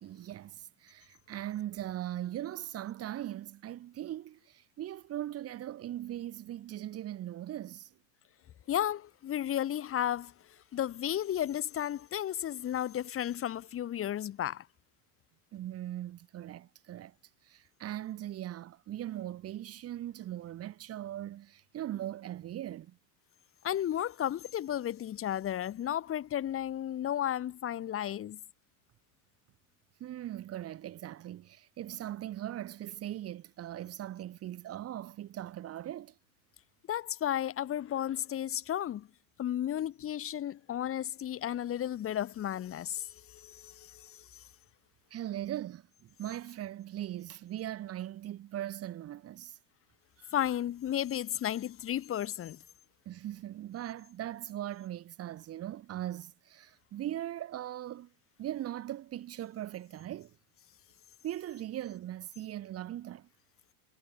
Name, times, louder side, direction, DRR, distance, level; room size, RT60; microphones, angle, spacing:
voice 1, 0.0-7.9 15.5-17.1 17.4-23.0 30.0-36.1 45.1-49.6 50.2-50.3 53.1-58.1 58.4-60.4 61.2-63.3, right 12 dB, 35° right, 2.2 m, -40 dB
voice 2, 8.7-10.3 10.7-14.7 23.6-28.4 36.9-39.1 39.4-44.2 50.3-52.6, left 11 dB, 30° left, 2.4 m, -33 dB
supercardioid pair, 120°, 43 cm